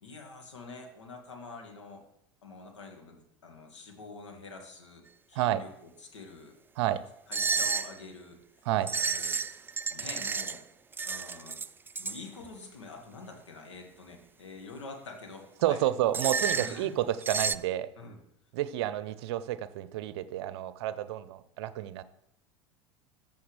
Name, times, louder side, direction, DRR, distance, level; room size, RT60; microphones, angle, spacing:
voice 1, 0.0-2.0 2.4-6.6 7.3-8.4 8.9-9.4 9.9-10.6 11.0-11.6 12.0-15.8 16.5-16.9 18.0-18.2, left 3 dB, 85° left, 2 dB, 1.9 m, -46 dB
sound 1, 7.3-7.9 8.9-10.6 10.9-12.2 16.1-16.8 17.2-17.6, right 5 dB, 15° right, 0.3 m, -31 dB
voice 2, 15.6-17.9 18.5-22.0, right 13 dB, 65° right, 15 dB, 0.6 m, -30 dB
13.5 x 7.0 x 3.3 m, 0.82 s
hypercardioid pair, 80°, 15 cm